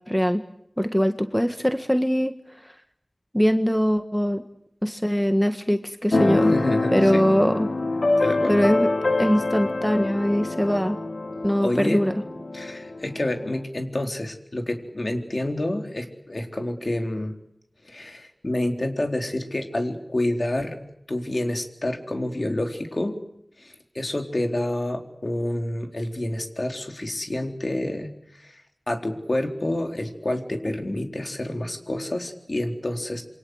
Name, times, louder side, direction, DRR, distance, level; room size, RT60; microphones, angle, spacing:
voice 1, 0.1-0.4 0.8-2.3 3.3-4.4 4.8-6.5 6.9-7.7 8.5-8.9 9.2-11.0 11.4-12.1, equal, 5° left, 8 dB, 1.6 m, -22 dB
Keyboard (musical), 6.1-13.6, left 2 dB, 80° left, 2.6 m, -25 dB
voice 2, 6.5-7.2 8.2-8.7 11.6-12.0 12.5-17.3 17.8-20.8 21.1-23.1 23.6-28.6 28.9-33.2, left 1 dB, 55° left, 4 dB, 4.1 m, -28 dB
27.5 x 24.5 x 8.1 m, 0.74 s
wide cardioid pair, 45°, 0 cm